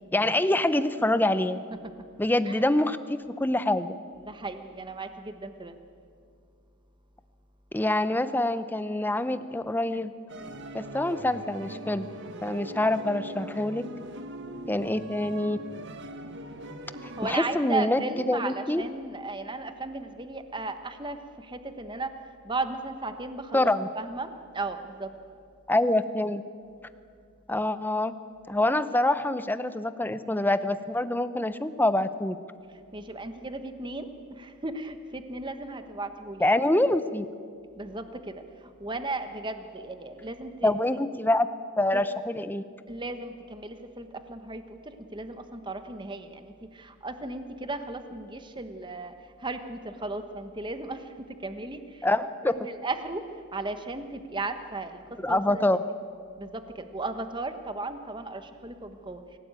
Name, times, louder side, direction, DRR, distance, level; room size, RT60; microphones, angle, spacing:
voice 1, 0.1-1.6 2.2-4.0 7.7-10.1 10.7-12.1 12.4-13.8 14.7-15.6 17.0-18.8 23.5-23.9 25.7-26.4 27.5-28.1 28.5-32.4 36.4-37.2 40.6-41.5 41.8-42.6 52.0-52.5 55.2-55.8, left 1 dB, 10° left, 12 dB, 0.7 m, -25 dB
voice 2, 4.3-5.7 17.2-18.5 18.8-21.2 21.5-22.1 22.4-23.7 24.0-24.3 24.5-25.1 32.9-34.1 34.4-36.4 37.8-38.3 38.8-40.7 42.9-46.5 46.8-49.1 49.4-51.0 51.4-51.8 52.4-53.2 53.5-55.0 55.3-55.6 56.4-56.6 56.9-59.2, right 2 dB, 20° right, 8 dB, 1.2 m, -35 dB
sound 1, 10.3-17.3, right 1 dB, 55° right, 1.5 m, -41 dB
25.5 x 17.0 x 9.0 m, 2.3 s
head